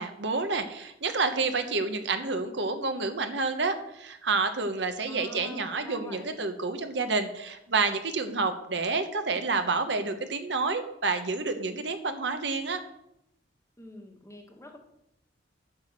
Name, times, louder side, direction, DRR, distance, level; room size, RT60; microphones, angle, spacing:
voice 1, 0.0-12.8, right 4 dB, 65° right, 8 dB, 1.1 m, -29 dB
voice 2, 5.0-6.4 13.8-14.8, left 2 dB, 15° left, 3 dB, 1.4 m, -46 dB
9.6 x 6.0 x 7.4 m, 0.80 s
head